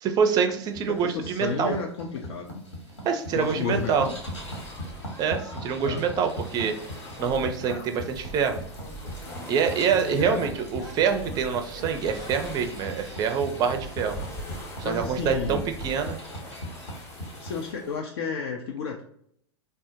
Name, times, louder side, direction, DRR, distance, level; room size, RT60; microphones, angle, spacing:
voice 1, 0.0-1.8 3.0-4.1 5.2-6.8 7.2-8.6 9.5-14.2 14.8-16.2, right 7 dB, 25° right, 6 dB, 0.4 m, -26 dB
sound 1, 0.6-17.7, equal, 80° left, 1.2 m, -40 dB
voice 2, 0.9-2.6 3.3-4.1 5.8-6.0 10.2-10.4 14.8-15.6 17.4-19.0, left 5 dB, 60° left, 1 dB, 0.4 m, -31 dB
sound 2, 3.7-18.0, equal, 15° left, 0.7 m, -42 dB
3.2 x 2.0 x 2.7 m, 0.67 s
figure-of-eight pair, 95°, 15 cm